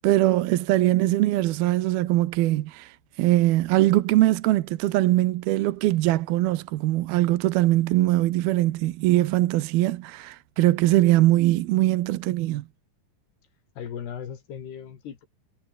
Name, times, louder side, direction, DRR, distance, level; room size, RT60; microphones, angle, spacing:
voice 1, 0.0-12.6, right 16 dB, 75° right, 2.7 m, -22 dB
voice 2, 13.8-15.3, left 8 dB, 75° left, 5.0 m, -37 dB
omnidirectional pair, 4.7 m